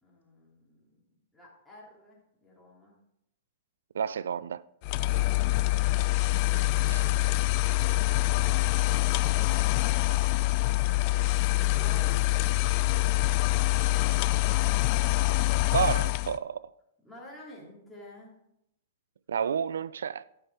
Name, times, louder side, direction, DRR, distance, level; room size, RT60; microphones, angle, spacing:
voice 1, 0.0-3.0 10.9-12.6 17.0-18.4, left 1 dB, 5° left, 3.4 m, -51 dB
voice 2, 3.9-4.6 6.8-7.1 15.7-16.7 19.3-20.2, right 7 dB, 80° right, 0.3 m, -30 dB
sound 1, 4.8-16.4, left 18 dB, 45° left, 0.4 m, -25 dB
11.0 x 5.9 x 4.9 m
hypercardioid pair, 125°, 0 cm